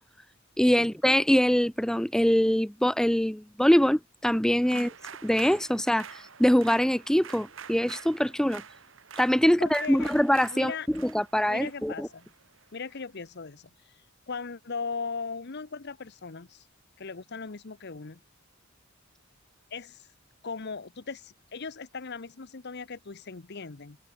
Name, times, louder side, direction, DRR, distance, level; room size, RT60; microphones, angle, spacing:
voice 1, 0.6-4.9 5.2-8.6 9.2-10.7 11.0-12.1, equal, 5° left, 0.5 m, -23 dB
sound 1, 4.6-13.0, right 7 dB, 70° right, 1.5 m, -47 dB
voice 2, 9.5-10.1 10.5-10.9 11.5-12.3 12.7-13.7 14.3-16.7 17.0-18.2 19.7-20.1 20.4-24.0, left 5 dB, 55° left, 1.0 m, -38 dB
head